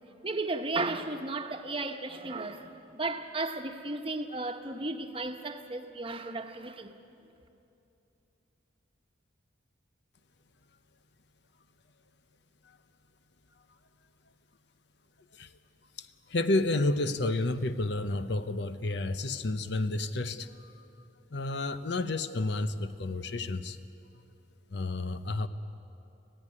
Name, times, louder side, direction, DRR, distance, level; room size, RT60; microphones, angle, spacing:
voice 1, 0.2-7.0, right 2 dB, 30° right, 1.2 m, -34 dB
voice 2, 16.0-20.8 21.3-23.8 24.7-25.5, left 2 dB, 60° left, 0.8 m, -31 dB
25.5 x 16.5 x 9.8 m
head